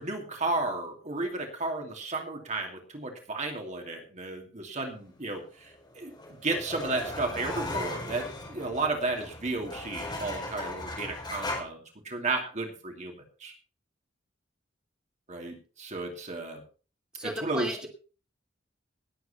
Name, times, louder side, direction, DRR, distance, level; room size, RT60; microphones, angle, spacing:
voice 1, 0.0-6.1 6.4-13.5 15.3-16.6 17.2-17.9, right 3 dB, 40° right, 3 dB, 2.6 m, -33 dB
sound 1, 5.7-11.6, left 2 dB, 25° left, 4.4 m, -37 dB
voice 2, 17.1-17.9, equal, 5° right, 1 dB, 2.7 m, -36 dB
19.0 x 8.1 x 4.3 m, 0.37 s
head